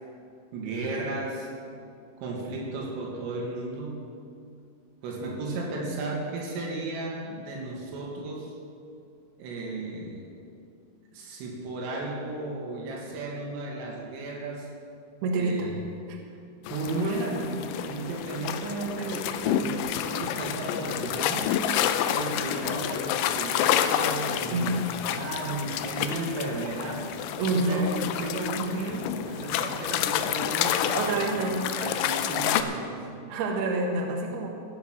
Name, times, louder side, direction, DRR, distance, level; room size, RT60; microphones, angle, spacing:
voice 1, 0.5-1.5 2.2-4.1 5.0-8.5 9.4-10.4 11.1-14.7 15.3-15.9 16.7-21.5 22.1-27.1 27.5-33.0, right 2 dB, 80° right, -1 dB, 4.7 m, -34 dB
voice 2, 15.2-15.7 16.1-16.2 24.5-24.9 27.4-27.9 30.9-31.6 33.3-34.5, right 2 dB, 65° right, 1 dB, 2.9 m, -27 dB
sound 1, 16.7-32.6, left 10 dB, 85° left, 2.8 m, -29 dB
15.5 x 9.5 x 6.3 m, 2.3 s
omnidirectional pair, 5.8 m